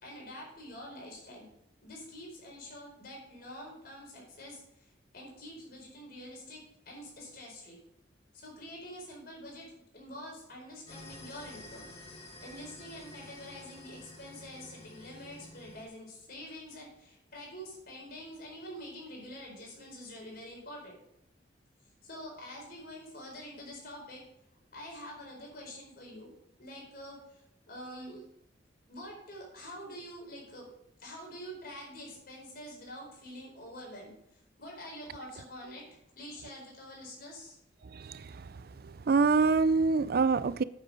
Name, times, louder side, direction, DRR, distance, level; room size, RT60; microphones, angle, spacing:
voice 1, 0.0-1.5 1.8-6.6 6.9-7.8 8.3-11.9 12.4-21.0 22.0-24.2 24.7-26.3 26.6-28.2 28.9-30.7 31.0-34.1 34.6-37.6, equal, 55° left, 4.6 m, -46 dB
sound 1, 10.9-15.9, left 2 dB, 35° left, 2.3 m, -50 dB
voice 2, 37.9-38.2 39.1-40.6, right 4 dB, 55° right, 0.5 m, -25 dB
9.1 x 8.0 x 5.3 m
head